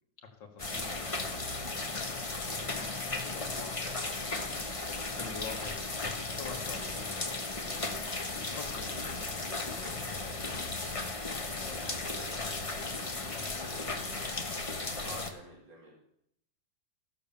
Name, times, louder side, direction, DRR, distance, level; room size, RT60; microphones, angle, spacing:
voice 1, 0.2-2.2 2.7-5.9 6.3-8.0 8.5-10.7 11.6-12.5 13.1-14.3, left 5 dB, 90° left, 2 dB, 2.2 m, -48 dB
sound 1, 0.6-15.3, left 3 dB, 25° left, 0.9 m, -36 dB
voice 2, 11.5-12.3 15.0-15.9, right 2 dB, 85° right, -3 dB, 3.1 m, -48 dB
15.0 x 6.9 x 6.9 m, 0.74 s
omnidirectional pair, 1.9 m